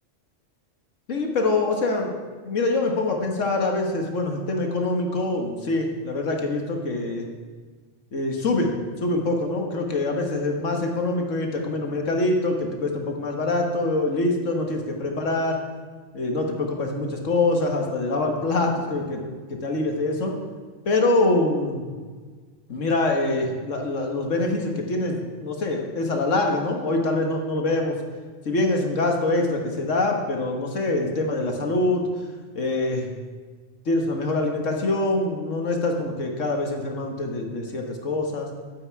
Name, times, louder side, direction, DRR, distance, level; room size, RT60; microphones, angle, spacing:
voice 1, 1.1-2.2 2.4-7.3 8.1-8.7 9.0-15.6 16.1-19.2 19.5-20.4 20.9-21.9 22.7-28.0 28.5-32.0 32.6-33.1 33.9-38.5, left 2 dB, 85° left, 2 dB, 1.8 m, -24 dB
11.5 x 9.1 x 4.7 m, 1.5 s
omnidirectional pair, 1.3 m